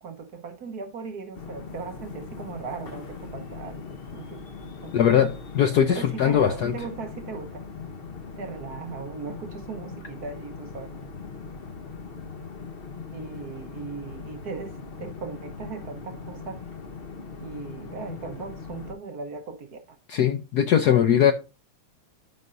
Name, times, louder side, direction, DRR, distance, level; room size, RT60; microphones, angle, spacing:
voice 1, 0.0-4.4 4.8-5.2 5.9-7.6 8.4-10.9 13.1-16.6 17.4-19.8, right 5 dB, 55° right, 1.4 m, -38 dB
sound 1, 1.3-18.9, left 4 dB, 45° left, 0.7 m, -40 dB
voice 2, 4.9-6.7 20.1-21.3, left 9 dB, 65° left, 1.0 m, -20 dB
13.5 x 5.5 x 2.6 m
omnidirectional pair, 2.3 m